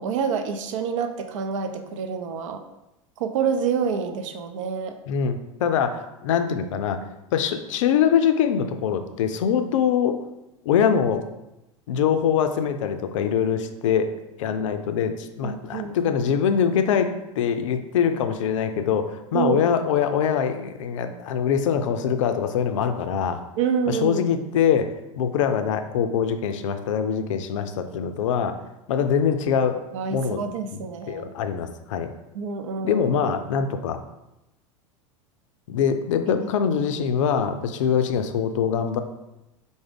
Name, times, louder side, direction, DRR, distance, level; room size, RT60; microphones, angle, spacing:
voice 1, 0.0-2.6 3.2-5.0 15.4-15.9 19.3-19.6 23.6-24.3 29.9-31.3 32.3-33.1 36.3-36.5, right 6 dB, 65° right, 7 dB, 0.4 m, -27 dB
voice 2, 5.1-7.0 7.3-10.2 10.7-11.2 11.9-14.1 14.4-23.4 23.9-24.9 25.2-28.5 28.9-29.8 30.1-30.4 30.7-32.1 32.8-34.0 35.7-39.0, left 7 dB, 65° left, 8 dB, 0.4 m, -23 dB
4.7 x 2.1 x 3.4 m, 0.94 s
hypercardioid pair, 85°, 17 cm